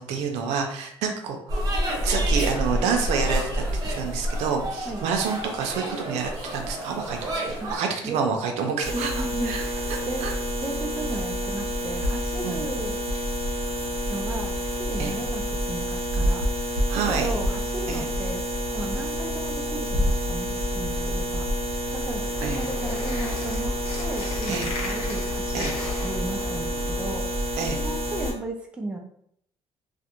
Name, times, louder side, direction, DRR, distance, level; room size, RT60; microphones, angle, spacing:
voice 1, 0.0-1.4 2.0-3.6 4.0-7.2 7.7-9.6 10.2-10.3 12.4-12.6 15.0-15.1 16.9-17.3 17.9-18.1 22.4-22.6 24.5-24.7 25.5-25.7 27.6-27.8, right 5 dB, 85° right, 3 dB, 0.5 m, -28 dB
sound 1, 1.5-7.8, equal, 35° right, 0.7 m, -28 dB
sound 2, 8.8-28.3, equal, 65° right, 0.8 m, -28 dB
voice 2, 8.9-10.3 10.6-13.0 14.1-18.4 18.7-25.7 26.0-27.3 27.8-29.0, right 2 dB, 10° right, 2 dB, 0.4 m, -35 dB
sound 3, 22.1-27.1, left 2 dB, 60° left, 0.8 m, -37 dB
2.5 x 2.0 x 2.8 m, 0.68 s
cardioid pair, 135°, 11 cm